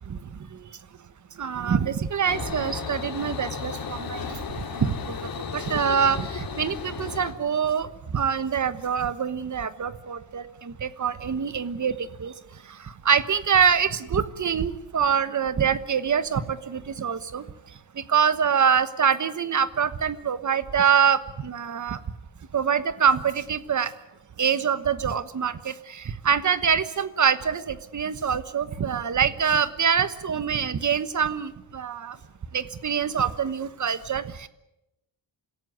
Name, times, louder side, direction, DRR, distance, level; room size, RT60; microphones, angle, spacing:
voice 1, 0.1-0.7 1.4-12.3 12.7-17.4 17.9-22.0 22.5-23.9 24.4-32.2 32.5-34.5, right 7 dB, 40° right, 13 dB, 1.2 m, -25 dB
sound 1, 2.3-7.3, left 5 dB, 55° left, 2.8 m, -34 dB
26.5 x 16.5 x 9.5 m, 0.92 s
wide cardioid pair, 160°, 43 cm